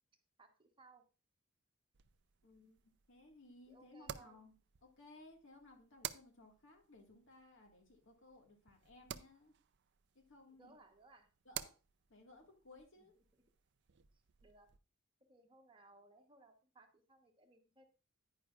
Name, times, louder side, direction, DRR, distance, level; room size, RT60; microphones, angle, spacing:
voice 1, 0.4-1.1 3.7-4.4 10.5-11.3 13.0-13.1 14.1-14.7 15.2-17.9, right 2 dB, 25° right, 4 dB, 1.1 m, -64 dB
sound 1, 1.9-14.8, right 10 dB, 55° right, 0.5 m, -53 dB
voice 2, 2.4-4.5 4.8-9.5 10.1-10.8 11.5-11.7 12.1-13.2, left 2 dB, 60° left, 2 dB, 1.9 m, -61 dB
9.9 x 9.9 x 2.4 m, 0.32 s
head